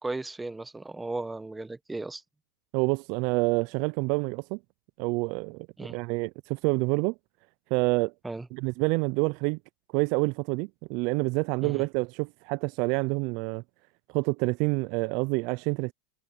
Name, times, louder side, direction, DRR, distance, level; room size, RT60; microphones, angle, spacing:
voice 1, 0.0-2.2 5.8-6.0 8.2-8.5 11.6-11.8, right 2 dB, 10° right, 1.1 m, -35 dB
voice 2, 2.7-4.6 5.0-7.1 7.7-8.1 8.5-9.6 9.9-13.6 14.1-15.9, right 28 dB, 55° right, 0.3 m, -27 dB
supercardioid pair, 130°, 0 cm